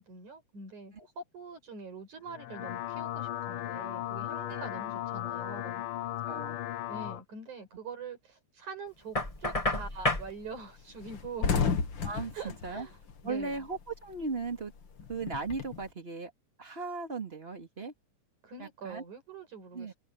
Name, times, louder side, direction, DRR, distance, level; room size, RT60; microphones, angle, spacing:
voice 1, 0.0-5.8 6.9-11.7 12.3-12.9 13.2-13.6 18.4-19.9, right 4 dB, 80° right, 7.8 m, -44 dB
sound 1, 2.3-7.2, left 12 dB, 85° left, 1.2 m, -36 dB
voice 2, 6.3-6.6 12.0-12.9 13.2-14.7 15.1-16.3 16.6-17.9 18.6-19.0 19.7-19.9, right 4 dB, 20° right, 2.3 m, -37 dB
Knock, 9.1-10.3, left 2 dB, 15° left, 1.5 m, -30 dB
sound 2, 9.3-9.6 10.0-10.2 10.4-10.6 10.9-13.9 14.2-15.8, left 6 dB, 45° left, 2.1 m, -32 dB
open air
omnidirectional pair, 3.4 m